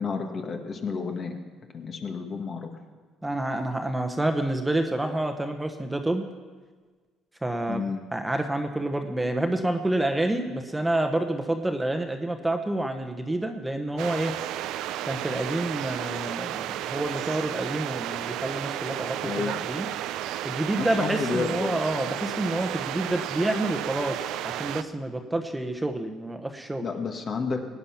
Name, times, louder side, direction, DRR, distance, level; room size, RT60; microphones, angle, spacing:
voice 1, 0.0-1.4 1.7-2.7 7.7-8.0 19.2-19.5 20.8-21.8 26.8-27.6, left 5 dB, 45° left, 4 dB, 1.9 m, -31 dB
voice 2, 3.2-6.2 7.4-7.8 8.1-14.3 15.0-19.9 20.4-26.9, right 1 dB, 10° right, 5 dB, 1.2 m, -28 dB
sound 1, 14.0-24.8, right 12 dB, 80° right, 0.5 m, -33 dB
17.5 x 9.7 x 5.9 m, 1.4 s
supercardioid pair, 85°, 0 cm